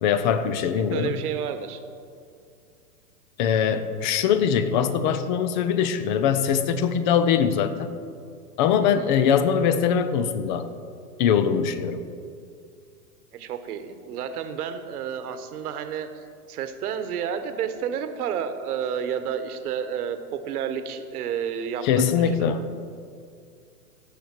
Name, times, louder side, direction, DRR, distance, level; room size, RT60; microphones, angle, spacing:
voice 1, 0.0-1.2 3.4-7.9 8.6-10.7 11.2-12.0 21.8-22.6, left 7 dB, 30° left, 11 dB, 0.5 m, -22 dB
voice 2, 0.7-1.8 8.8-9.2 13.3-22.6, right 8 dB, 65° right, 9 dB, 1.2 m, -31 dB
17.0 x 6.7 x 4.5 m, 2.3 s
hypercardioid pair, 140°, 48 cm